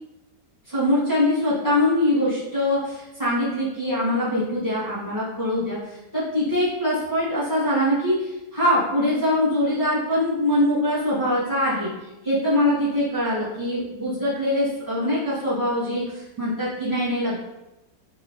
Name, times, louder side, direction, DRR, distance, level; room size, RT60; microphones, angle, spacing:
voice 1, 0.7-11.9 12.2-17.4, left 1 dB, 10° left, -11 dB, 1.3 m, -23 dB
3.6 x 3.1 x 3.6 m, 0.97 s
omnidirectional pair, 1.9 m